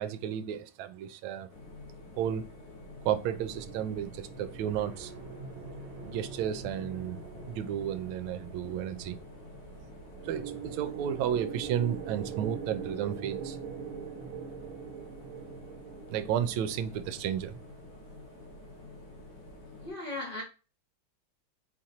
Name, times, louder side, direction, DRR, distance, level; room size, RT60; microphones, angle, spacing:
voice 1, 0.0-1.5 2.2-2.5 3.0-5.1 6.0-7.2 7.5-9.2 10.2-13.6 16.1-17.6, right 9 dB, 80° right, 1.3 m, -32 dB
sound 1, 1.5-19.9, left 1 dB, 85° left, 2.1 m, -49 dB
sound 2, 3.5-17.4, right 6 dB, 60° right, 1.7 m, -43 dB
voice 2, 19.8-20.4, left 2 dB, 35° left, 0.9 m, -36 dB
4.4 x 2.5 x 4.1 m
omnidirectional pair, 2.3 m